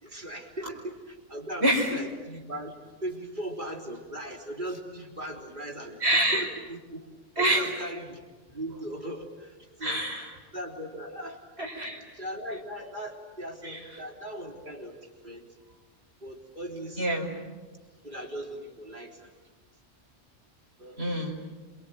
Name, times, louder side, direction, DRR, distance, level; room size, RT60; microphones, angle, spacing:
voice 1, 0.0-2.8 3.0-6.0 6.3-7.1 7.4-10.0 10.5-11.4 12.1-15.4 16.2-17.1 18.0-19.3 20.8-21.0, right 1 dB, 40° right, 2 dB, 3.8 m, -39 dB
voice 2, 1.6-2.0 6.0-6.5 7.4-7.8 9.8-10.3 11.6-12.0 13.6-13.8 17.0-17.3 21.0-21.4, right 1 dB, 60° right, 0 dB, 5.2 m, -26 dB
27.5 x 24.0 x 9.1 m, 1.3 s
omnidirectional pair, 1.3 m